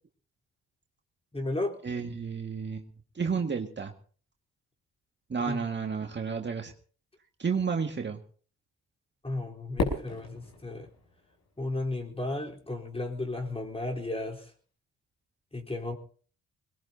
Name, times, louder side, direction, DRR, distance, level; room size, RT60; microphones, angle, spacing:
voice 1, 1.3-1.7 5.5-5.6 9.2-10.9 11.6-14.5 15.5-15.9, left 2 dB, 20° left, 1 dB, 4.0 m, -34 dB
voice 2, 1.8-2.8 3.2-3.9 5.3-6.7 7.4-8.2, right 5 dB, 35° right, 3 dB, 2.0 m, -31 dB
Fireworks, 9.8-12.1, left 3 dB, 60° left, 6.4 m, -35 dB
22.0 x 20.0 x 2.8 m, 0.43 s
supercardioid pair, 55°, 32 cm